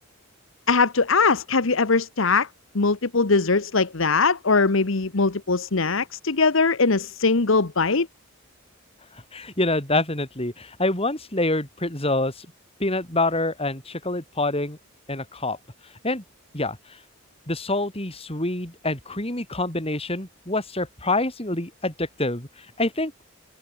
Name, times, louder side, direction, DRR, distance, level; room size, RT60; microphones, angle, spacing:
voice 1, 0.7-2.5 2.7-8.1, left 4 dB, 65° left, 1.1 m, -21 dB
voice 2, 9.3-12.5 12.8-14.8 15.1-15.6 16.0-16.2 16.5-16.8 17.5-22.5 22.8-23.1, left 2 dB, 30° left, 6.2 m, -26 dB
head